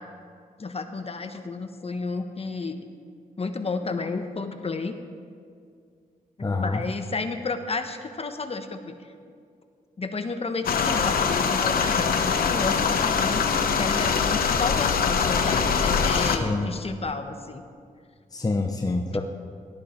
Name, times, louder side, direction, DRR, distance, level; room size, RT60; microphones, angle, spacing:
voice 1, 0.6-2.8 3.4-4.9 6.4-9.0 10.0-17.6, left 3 dB, 40° left, 7 dB, 1.3 m, -31 dB
voice 2, 6.4-6.8 16.4-16.7 18.3-19.2, left 3 dB, 25° left, 3 dB, 0.9 m, -26 dB
sound 1, 10.6-16.4, left 6 dB, 80° left, 1.0 m, -23 dB
17.5 x 13.0 x 4.4 m, 2.2 s
cardioid pair, 65°, 15 cm